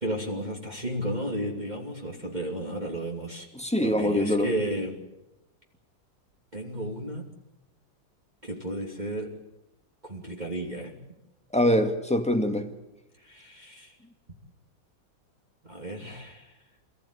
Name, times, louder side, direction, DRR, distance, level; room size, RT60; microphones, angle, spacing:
voice 1, 0.0-3.5 3.8-5.0 6.5-7.3 8.4-9.3 10.0-10.9 13.2-13.9 15.6-16.5, right 1 dB, 20° right, 0 dB, 3.1 m, -33 dB
voice 2, 3.6-4.5 11.5-12.7, equal, 5° left, 5 dB, 1.9 m, -24 dB
28.0 x 16.0 x 10.0 m, 0.93 s
omnidirectional pair, 2.1 m